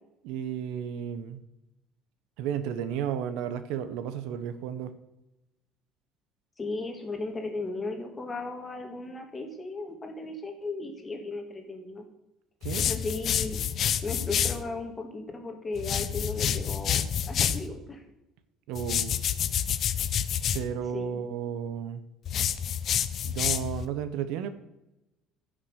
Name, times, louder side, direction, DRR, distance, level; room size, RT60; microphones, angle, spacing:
voice 1, 0.2-1.4 2.4-4.9 12.6-12.9 18.7-19.1 20.5-22.0 23.2-24.5, right 9 dB, 80° right, 11 dB, 1.2 m, -33 dB
voice 2, 6.6-12.1 12.8-13.6 14.0-18.0 20.9-21.2, left 3 dB, 15° left, 4 dB, 2.0 m, -36 dB
sound 1, 12.6-14.6 15.8-17.7 18.8-20.6 22.3-23.9, left 9 dB, 35° left, 0.6 m, -28 dB
15.5 x 6.4 x 6.5 m, 0.91 s
cardioid pair, 170°, 0 cm